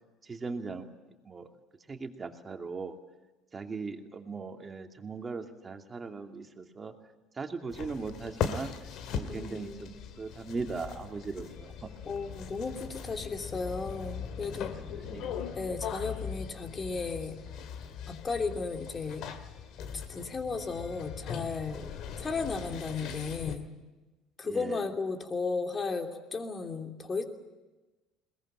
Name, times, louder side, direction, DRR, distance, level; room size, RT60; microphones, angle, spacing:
voice 1, 0.2-1.0 1.2-1.5 1.9-3.0 3.5-6.9 7.3-8.7 9.1-11.9 15.0-15.6 22.2-22.3 24.4-24.8, right 4 dB, 25° right, 4 dB, 2.6 m, -39 dB
sound 1, 7.7-23.6, left 7 dB, 60° left, 2.0 m, -40 dB
voice 2, 9.2-9.9 11.4-11.5 12.1-14.7 15.6-17.3 18.1-19.2 19.9-21.9 22.2-23.7 24.4-27.2, left 4 dB, 30° left, 5 dB, 3.1 m, -35 dB
22.0 x 20.0 x 9.0 m, 1.1 s
hypercardioid pair, 65°, 0 cm